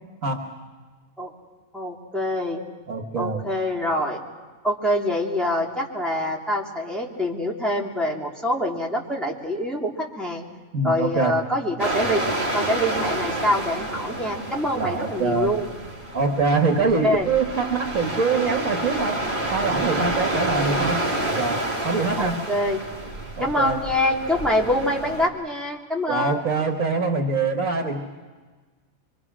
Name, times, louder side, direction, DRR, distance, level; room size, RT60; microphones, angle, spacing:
voice 1, 1.7-2.6 3.2-4.2 4.6-10.4 10.8-12.2 12.5-15.7 17.0-17.3 22.2-22.8 23.4-26.4, left 1 dB, ahead, -3 dB, 3.0 m, -25 dB
voice 2, 2.9-3.4 10.7-11.4 14.8-15.5 16.1-19.2 19.5-21.0 21.4-22.4 23.4-23.8 26.1-28.0, right 4 dB, 65° right, 3 dB, 2.0 m, -24 dB
sound 1, 11.8-25.3, right 1 dB, 35° right, 2.7 m, -29 dB
25.0 x 25.0 x 6.2 m, 1.3 s
omnidirectional pair, 1.5 m